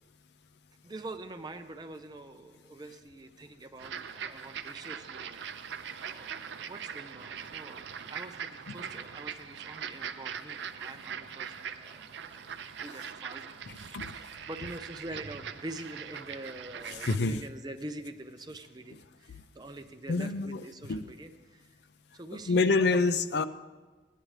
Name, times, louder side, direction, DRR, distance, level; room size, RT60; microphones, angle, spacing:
voice 1, 0.8-5.4 6.0-12.5 12.8-21.8 22.1-23.0, right 2 dB, 20° right, 7 dB, 0.5 m, -45 dB
sound 1, 3.8-17.2, right 7 dB, 75° right, 0.4 m, -41 dB
voice 2, 17.1-17.4 20.1-20.6 20.9-21.0 22.5-23.4, left 3 dB, 65° left, 11 dB, 0.4 m, -26 dB
15.5 x 10.0 x 3.2 m, 1.3 s
head